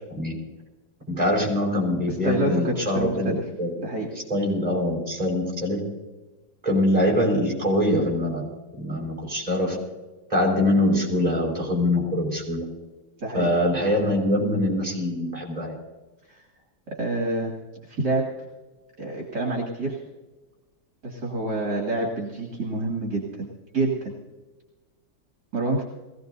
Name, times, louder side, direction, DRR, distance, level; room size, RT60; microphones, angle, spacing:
voice 1, 1.1-3.7 4.3-5.8 6.6-8.4 8.8-9.8 10.3-12.6 13.3-15.8, left 1 dB, 20° right, -3 dB, 5.6 m, -23 dB
voice 2, 2.1-3.4 3.8-4.1 13.2-13.5 16.3-16.4 16.9-17.5 17.9-18.3 19.0-20.0 21.0-24.1 25.5-25.8, right 2 dB, 60° right, -1 dB, 2.7 m, -27 dB
22.0 x 16.5 x 2.7 m, 1.2 s
omnidirectional pair, 2.0 m